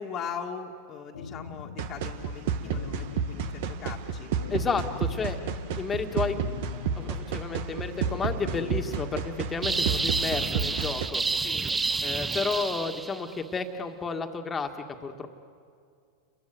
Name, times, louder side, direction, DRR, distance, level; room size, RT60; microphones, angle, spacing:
voice 1, 0.0-4.3 11.4-11.7, left 6 dB, 35° left, 1 dB, 1.9 m, -39 dB
sound 1, 1.1-11.1, left 7 dB, 75° left, 1.2 m, -43 dB
sound 2, 1.8-11.1, right 6 dB, 60° right, 1.5 m, -31 dB
voice 2, 4.5-5.4 5.8-6.4 6.7-11.2 12.0-14.7 15.0-15.3, left 4 dB, 20° left, 6 dB, 2.0 m, -32 dB
sound 3, 9.6-13.3, right 3 dB, 15° right, 0.7 m, -29 dB
29.5 x 22.5 x 7.9 m, 2.3 s
hypercardioid pair, 100°, 0 cm